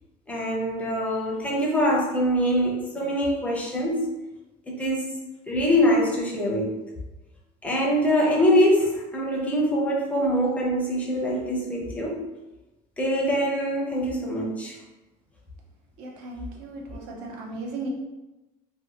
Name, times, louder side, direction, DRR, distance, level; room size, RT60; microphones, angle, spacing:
voice 1, 0.3-4.1 4.7-5.0 5.5-6.7 7.6-12.2 13.0-14.8, equal, 10° left, 0.4 m, -24 dB
voice 2, 16.0-17.9, right 3 dB, 85° right, 0.7 m, -36 dB
2.6 x 2.1 x 2.8 m
cardioid pair, 165°, 18 cm